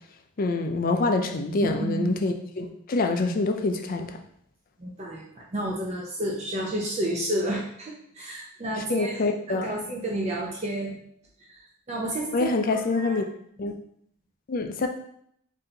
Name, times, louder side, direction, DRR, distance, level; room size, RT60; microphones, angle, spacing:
voice 1, 0.4-4.1 8.9-9.7 12.3-13.2 13.6-13.7 14.5-14.9, left 3 dB, 40° left, 5 dB, 0.4 m, -26 dB
voice 2, 1.6-2.2 4.8-9.2 9.5-11.1 11.5-11.6 11.9-13.2, right 1 dB, 30° right, -2 dB, 0.6 m, -31 dB
4.1 x 2.7 x 3.9 m, 0.69 s
head